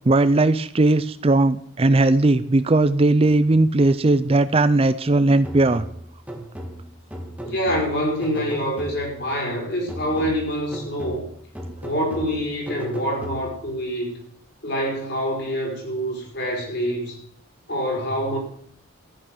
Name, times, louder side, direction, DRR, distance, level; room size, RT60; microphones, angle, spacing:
voice 1, 0.1-5.8, right 2 dB, 25° right, 14 dB, 0.4 m, -18 dB
sound 1, 5.4-9.3 9.9-13.8, right 1 dB, 5° right, 1.7 m, -37 dB
voice 2, 7.4-11.3 11.8-14.2 14.6-17.2 17.7-18.4, equal, 50° left, 0 dB, 4.7 m, -26 dB
14.0 x 9.6 x 6.1 m, 0.64 s
head